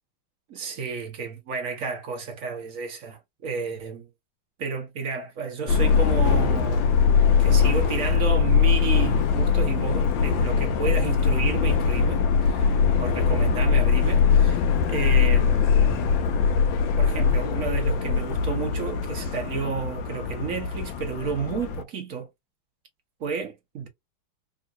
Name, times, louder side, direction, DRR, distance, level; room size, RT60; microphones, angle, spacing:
voice 1, 0.5-4.1 4.6-14.6 14.9-16.2 17.0-22.3 23.2-23.9, right 6 dB, 55° right, 0.9 m, -32 dB
Subway metro underground, 5.7-21.8, left 6 dB, 75° left, 1.1 m, -21 dB
3.8 x 2.7 x 2.3 m
omnidirectional pair, 2.4 m